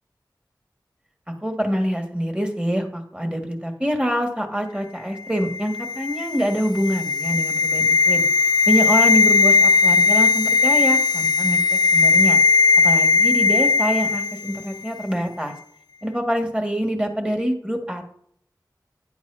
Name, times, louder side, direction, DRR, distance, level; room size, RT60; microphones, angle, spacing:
voice 1, 1.3-8.3 8.7-12.4 12.8-15.5 16.0-18.1, equal, 15° right, 3 dB, 1.9 m, -25 dB
sound 1, 5.4-14.6 14.9-15.0, left 4 dB, 65° left, 0.3 m, -18 dB
10.5 x 7.9 x 2.8 m, 0.63 s
wide cardioid pair, 40°, 8 cm